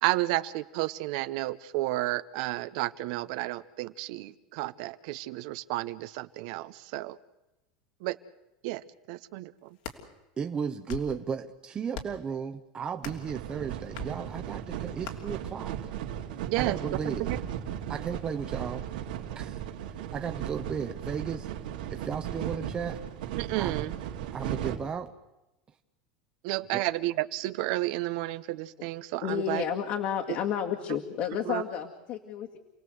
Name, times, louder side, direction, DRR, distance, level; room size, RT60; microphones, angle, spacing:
voice 1, 0.0-7.2 8.0-8.2 8.6-8.8 9.1-9.5 16.5-16.8 17.0-17.4 23.4-23.9 26.4-29.6 31.5-31.6, right 17 dB, 60° right, 13 dB, 0.9 m, -31 dB
sound 1, 9.6-10.0 10.7-11.2 11.9-12.3 13.0-13.3 13.9-14.1 15.0-15.2, left 8 dB, 75° left, 3.2 m, -40 dB
voice 2, 10.4-15.9 16.6-17.3 17.9-18.9 19.3-19.6 20.1-21.5 21.9-23.0 23.6-23.8 24.3-25.1 26.7-26.8, right 6 dB, 20° right, 6 dB, 0.9 m, -35 dB
sound 2, 13.0-24.8, right 10 dB, 85° right, 2.6 m, -36 dB
voice 3, 29.2-32.6, left 8 dB, 50° left, 2 dB, 2.0 m, -31 dB
29.0 x 18.5 x 8.0 m, 1.0 s
supercardioid pair, 145°, 4 cm